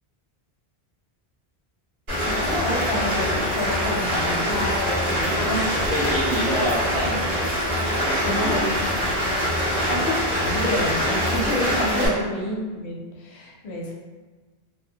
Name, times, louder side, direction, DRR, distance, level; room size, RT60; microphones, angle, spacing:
Rain, 2.1-12.1, equal, 55° right, 1.2 m, -24 dB
voice 1, 2.3-6.0 8.3-9.1 9.9-13.9, left 1 dB, 85° left, -2 dB, 0.9 m, -29 dB
voice 2, 5.3-8.6 12.0-12.1, equal, 10° right, -10 dB, 0.8 m, -28 dB
2.7 x 2.1 x 2.7 m, 1.3 s
omnidirectional pair, 1.1 m